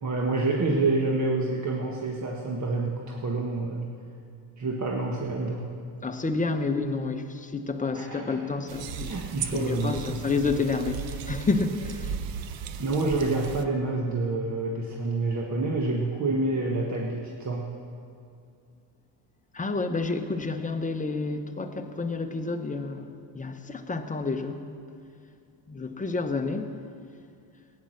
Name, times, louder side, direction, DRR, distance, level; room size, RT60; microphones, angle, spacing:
voice 1, 0.0-3.9 4.6-5.7 7.9-8.5 9.1-10.2 12.8-17.7, right 2 dB, 35° right, -1 dB, 1.5 m, -28 dB
voice 2, 6.0-9.2 9.5-12.2 19.5-24.6 25.7-26.7, left 3 dB, 15° left, 6 dB, 0.9 m, -29 dB
sound 1, 8.7-13.6, right 7 dB, 65° right, 0.9 m, -36 dB
16.0 x 9.6 x 6.5 m, 2.4 s
cardioid pair, 105°, 49 cm